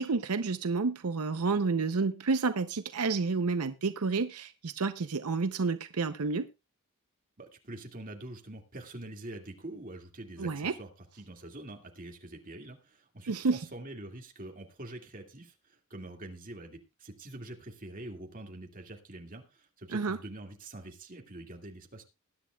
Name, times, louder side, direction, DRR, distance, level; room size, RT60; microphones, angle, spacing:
voice 1, 0.0-6.5 10.4-10.7 13.3-13.6 19.9-20.2, right 4 dB, 85° right, 11 dB, 0.7 m, -30 dB
voice 2, 7.4-22.0, right 1 dB, 40° right, 2 dB, 2.2 m, -45 dB
20.5 x 10.5 x 2.3 m, 0.26 s
head